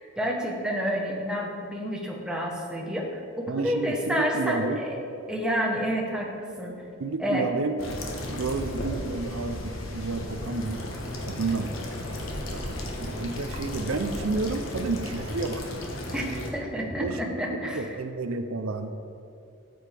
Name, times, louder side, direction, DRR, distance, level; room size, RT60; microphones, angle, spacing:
voice 1, 0.2-5.0 5.3-6.7 7.2-7.5 16.1-17.8, equal, 5° right, -1 dB, 1.0 m, -29 dB
voice 2, 3.5-4.8 7.0-7.8 8.3-10.8 11.3-11.7 12.1-15.7 17.0-18.9, right 3 dB, 80° right, 8 dB, 0.6 m, -31 dB
sound 1, 7.8-16.5, left 1 dB, 75° left, 1.3 m, -34 dB
12.5 x 7.8 x 3.4 m, 2.5 s
head